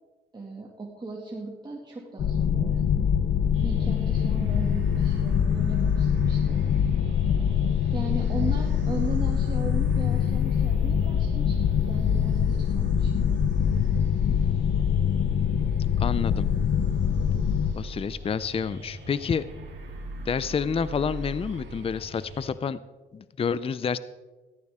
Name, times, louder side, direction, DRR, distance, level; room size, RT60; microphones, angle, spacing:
voice 1, 0.3-3.1 3.6-6.6 7.9-13.3, right 2 dB, 20° right, -3 dB, 2.2 m, -37 dB
sound 1, 2.2-17.7, left 8 dB, 60° left, 0.8 m, -24 dB
sound 2, 3.5-22.5, right 1 dB, 70° right, 3.2 m, -40 dB
voice 2, 16.0-16.5 17.7-19.4 20.3-22.8 23.1-24.0, left 6 dB, 30° left, 16 dB, 0.5 m, -28 dB
17.5 x 14.0 x 3.7 m, 1.3 s
cardioid pair, 90°, 20 cm